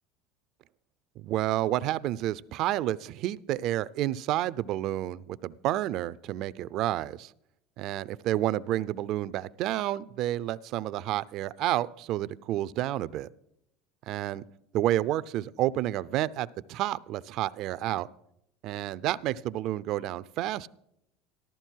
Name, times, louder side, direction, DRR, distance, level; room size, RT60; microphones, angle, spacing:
voice 1, 1.2-7.3 7.8-13.3 14.1-14.4 14.7-18.1 18.6-20.7, right 14 dB, 60° right, 19 dB, 0.5 m, -30 dB
14.0 x 13.0 x 4.6 m, 0.80 s
supercardioid pair, 100°, 0 cm